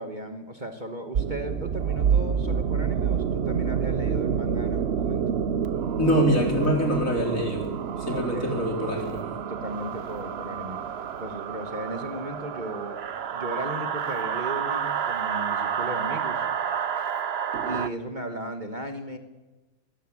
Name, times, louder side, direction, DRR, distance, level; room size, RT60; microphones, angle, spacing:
voice 1, 0.0-5.4 8.1-8.6 9.5-10.8 11.2-13.0 13.3-16.4 17.7-19.2, right 1 dB, 30° right, 6 dB, 1.7 m, -36 dB
sound 1, 1.1-17.9, right 7 dB, 50° right, 0.9 m, -28 dB
voice 2, 6.0-7.7 8.0-9.2, equal, 55° left, 2 dB, 4.8 m, -24 dB
22.0 x 16.5 x 9.0 m, 1.1 s
omnidirectional pair, 1.7 m